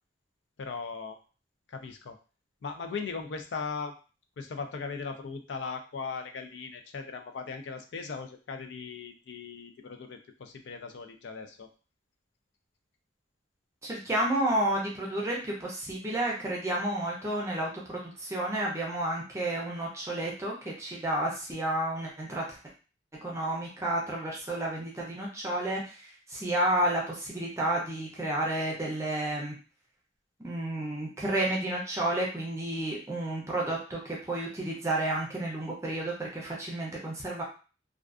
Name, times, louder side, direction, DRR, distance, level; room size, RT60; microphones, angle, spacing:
voice 1, 0.6-1.2 1.7-2.2 2.6-3.9 4.4-11.7, left 5 dB, 70° left, 6 dB, 0.4 m, -38 dB
voice 2, 13.8-22.6 23.2-29.5 30.4-37.4, right 1 dB, 15° right, -3 dB, 0.5 m, -31 dB
2.4 x 2.3 x 2.3 m, 0.35 s
head